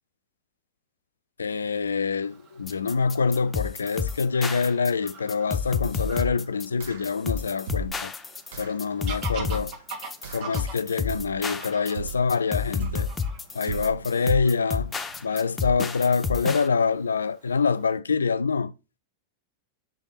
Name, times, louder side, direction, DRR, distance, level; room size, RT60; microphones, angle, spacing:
voice 1, 1.4-8.1 8.6-9.8 10.3-13.1 13.5-14.9 15.2-18.7, left 5 dB, 75° left, 0.3 m, -25 dB
Fowl / Bird vocalization bird call bird song, 2.2-18.0, right 5 dB, 40° right, 1.3 m, -46 dB
sound 1, 2.7-16.7, left 5 dB, 15° left, 0.5 m, -31 dB
sound 2, 5.9-6.4 6.8-7.2 7.7-8.1 8.5-8.8 9.4-9.8 10.2-10.6 11.1-11.5 11.9-12.4 12.8-13.2 13.7-14.1, right 8 dB, 60° right, 0.8 m, -37 dB
5.2 x 3.4 x 5.5 m
figure-of-eight pair, 90°, 0 cm